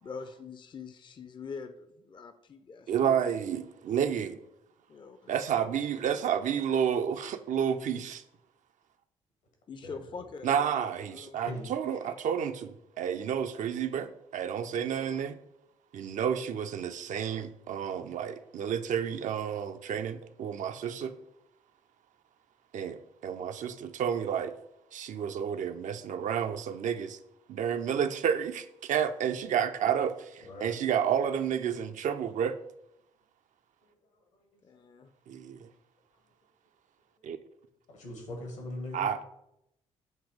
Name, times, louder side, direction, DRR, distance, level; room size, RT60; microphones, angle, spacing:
voice 1, 0.0-3.5 4.9-5.7 9.7-11.4 12.0-12.1 34.6-35.1, left 5 dB, 30° left, 0.5 m, -45 dB
voice 2, 2.9-4.4 5.3-8.2 10.4-15.4 15.9-21.1 22.7-24.5 24.9-27.2 27.5-32.5 35.3-35.6 37.2-37.4 38.9-39.2, right 8 dB, 50° right, 0.5 m, -30 dB
voice 3, 9.8-10.3 11.4-11.7 30.4-30.7 33.8-34.8 37.2-37.3 37.9-39.1, left 1 dB, 75° left, 1.7 m, -42 dB
7.4 x 2.9 x 4.9 m
figure-of-eight pair, 40°, 16 cm